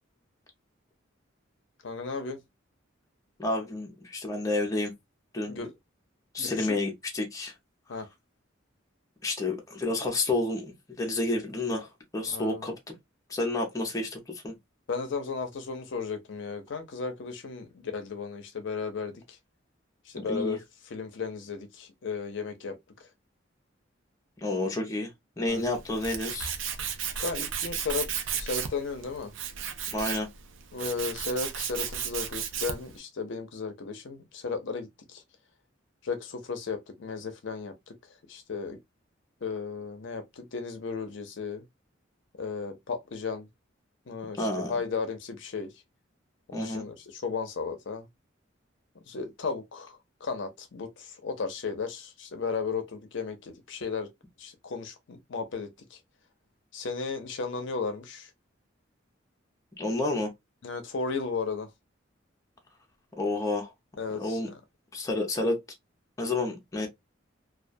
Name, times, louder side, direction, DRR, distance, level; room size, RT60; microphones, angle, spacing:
voice 1, 1.8-2.4 5.5-5.7 6.4-6.8 7.9-8.1 12.3-12.7 14.9-19.4 20.1-23.1 25.4-25.6 27.2-29.3 30.7-35.2 36.0-37.9 38.3-38.8 39.4-41.7 42.3-43.5 44.1-45.7 46.5-48.1 49.1-54.1 54.4-56.0 56.7-58.3 60.6-61.7 64.0-64.6, left 4 dB, 65° left, 0.5 m, -35 dB
voice 2, 3.4-4.9 5.3-5.6 6.3-7.5 9.2-12.9 13.3-14.2 14.4-14.5 20.2-20.6 24.4-25.1 25.4-26.5 29.9-30.3 44.4-44.7 46.5-46.8 59.8-60.3 63.2-63.7 64.1-64.5 64.9-65.6 66.2-66.9, left 2 dB, 15° left, 0.6 m, -30 dB
Tools, 25.5-33.0, right 8 dB, 75° right, 0.4 m, -34 dB
2.3 x 2.2 x 2.5 m
head